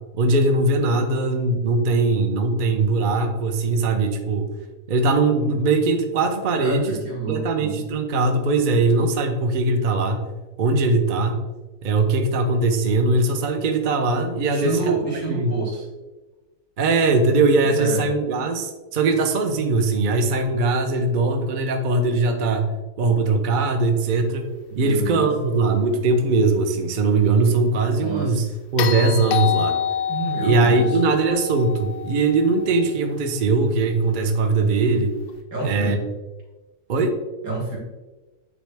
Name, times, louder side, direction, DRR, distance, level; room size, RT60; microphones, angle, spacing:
voice 1, 0.1-4.5 4.9-7.0 7.3-10.2 10.6-11.4 11.8-15.0 15.3-15.6 16.8-22.7 23.0-24.5 24.8-28.5 28.7-29.8 30.4-35.1 35.6-36.0 36.9-37.2, right 3 dB, 50° right, 5 dB, 0.6 m, -20 dB
voice 2, 6.5-7.8 14.5-15.8 17.6-18.1 24.7-25.5 28.0-28.5 30.1-31.0 35.5-36.1 37.4-37.8, right 3 dB, 70° right, -3 dB, 2.2 m, -28 dB
sound 1, 28.8-33.0 35.3-35.4, left 9 dB, 90° left, 0.5 m, -27 dB
8.9 x 3.3 x 3.4 m, 1.2 s
omnidirectional pair, 1.6 m